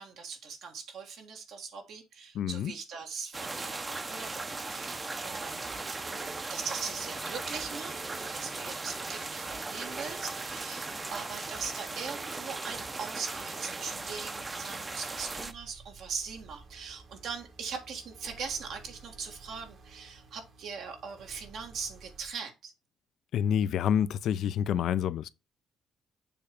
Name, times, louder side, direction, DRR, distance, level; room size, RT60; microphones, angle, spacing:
voice 1, 0.0-5.7 6.5-22.7, right 5 dB, 75° right, 1.7 m, -40 dB
voice 2, 2.3-2.7 23.3-25.3, left 9 dB, 75° left, 0.5 m, -28 dB
sound 1, 3.3-15.5, right 3 dB, 25° right, 0.7 m, -38 dB
sound 2, 5.4-22.3, right 4 dB, 60° right, 1.6 m, -50 dB
7.0 x 3.2 x 5.1 m
cardioid pair, 90°, 0 cm